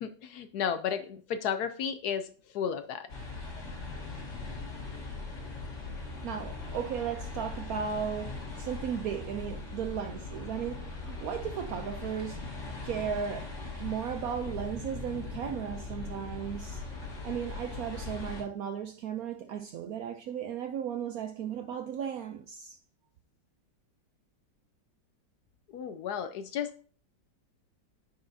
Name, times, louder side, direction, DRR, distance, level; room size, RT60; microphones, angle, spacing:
voice 1, 0.0-3.1 25.7-26.7, left 8 dB, 70° left, 1.0 m, -33 dB
sound 1, 3.1-18.4, left 3 dB, 45° left, 1.7 m, -40 dB
voice 2, 6.1-12.5 12.8-16.8 17.2-22.8, right 8 dB, 75° right, 0.8 m, -36 dB
9.6 x 5.6 x 2.7 m
omnidirectional pair, 2.0 m